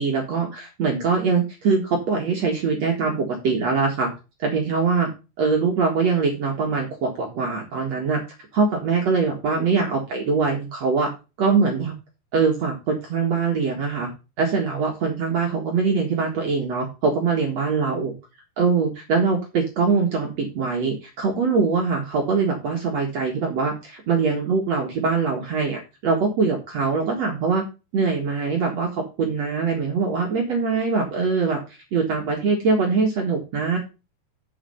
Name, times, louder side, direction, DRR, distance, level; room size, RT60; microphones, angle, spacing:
voice 1, 0.0-4.1 4.4-5.1 5.4-8.2 8.5-11.1 11.4-11.9 12.3-14.1 14.4-18.1 18.6-27.6 27.9-31.6 31.9-33.8, right 4 dB, 55° right, 0 dB, 1.9 m, -23 dB
6.9 x 6.7 x 5.6 m, 0.29 s
omnidirectional pair, 5.3 m